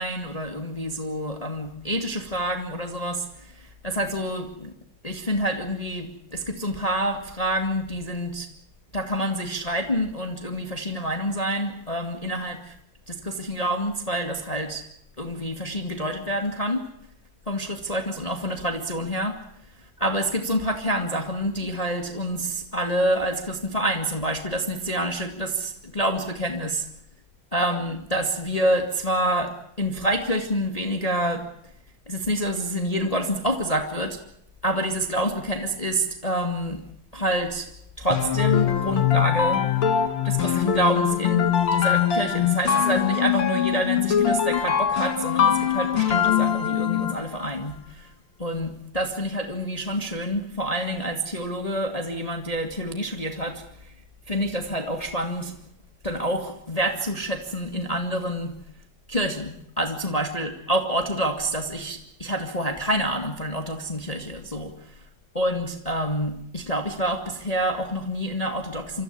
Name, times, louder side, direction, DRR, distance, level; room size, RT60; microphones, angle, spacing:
voice 1, 0.0-4.7 5.0-8.5 8.9-12.7 13.1-14.8 15.2-16.9 17.5-19.4 20.0-26.8 27.5-31.4 32.1-34.2 34.6-36.8 37.1-37.7 38.0-39.6 40.2-48.1 48.4-53.9 54.3-55.5 56.0-58.6 59.1-64.9 65.3-69.0, equal, 70° left, 4 dB, 0.3 m, -27 dB
sound 1, 38.1-47.3, left 9 dB, 45° left, 2.3 m, -22 dB
26.0 x 14.0 x 9.9 m, 0.77 s
omnidirectional pair, 4.1 m